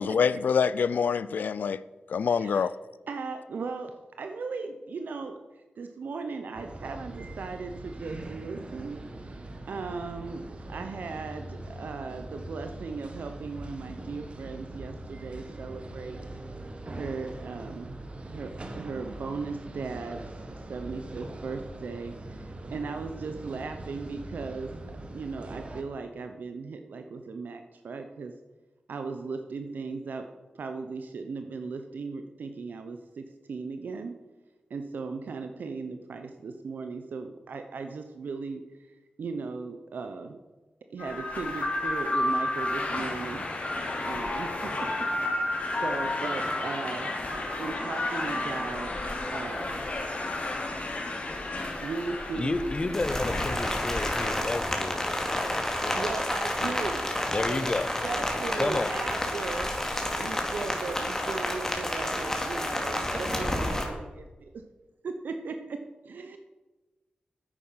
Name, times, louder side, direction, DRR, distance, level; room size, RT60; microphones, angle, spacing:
voice 1, 0.0-1.8 2.1-2.7, left 6 dB, 80° left, 0.4 m, -25 dB
voice 2, 2.3-2.7 3.1-3.9 4.2-10.4 10.7-16.2 16.9-18.0 18.3-20.3 20.7-24.7 25.1-28.3 28.9-30.3 30.5-34.1 34.7-40.4 40.9-43.7 44.0-48.9 49.3-49.9 51.8-52.9 55.9-57.1 57.5-57.7 58.0-59.7 60.2-64.6 65.0-66.4, right 4 dB, 80° right, 0.7 m, -37 dB
sound 1, 6.5-25.8, right 1 dB, 40° right, 1.3 m, -42 dB
Trenet de Nadal, 41.0-54.4, left 2 dB, 50° left, 2.8 m, -32 dB
voice 3, 52.3-56.1 57.3-57.9 58.5-59.0, left 2 dB, 35° left, 0.6 m, -31 dB
Rain, 52.9-63.8, left 1 dB, 15° left, 2.3 m, -30 dB
9.9 x 8.6 x 5.6 m
wide cardioid pair, 75°, 3 cm